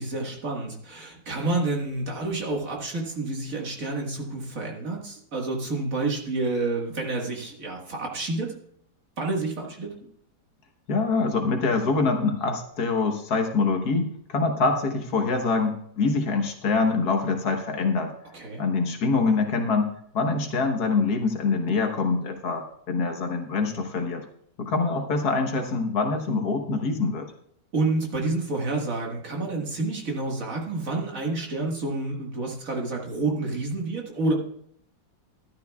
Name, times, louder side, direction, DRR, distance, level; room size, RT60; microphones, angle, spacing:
voice 1, 0.0-8.5 9.2-9.9 18.3-18.6 27.7-34.3, right 2 dB, 55° right, 0 dB, 2.1 m, -29 dB
voice 2, 10.9-18.1 18.6-24.2 24.6-27.3, left 4 dB, 70° left, 4 dB, 1.7 m, -25 dB
13.0 x 11.5 x 2.3 m, 0.68 s
omnidirectional pair, 1.7 m